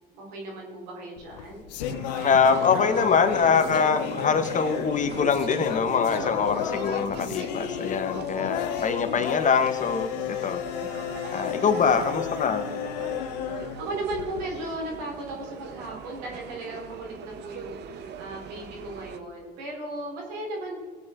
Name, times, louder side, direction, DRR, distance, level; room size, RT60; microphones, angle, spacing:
voice 1, 0.2-1.7 13.8-20.8, right 1 dB, 85° right, -1 dB, 3.6 m, -36 dB
sound 1, 1.2-14.6, left 10 dB, 85° left, 0.7 m, -32 dB
sound 2, 1.9-19.2, right 8 dB, 55° right, 1.0 m, -42 dB
voice 2, 2.2-10.6 11.3-12.6, left 5 dB, 35° left, 8 dB, 1.3 m, -24 dB
18.0 x 8.8 x 3.7 m, 1.5 s
hypercardioid pair, 70°, 21 cm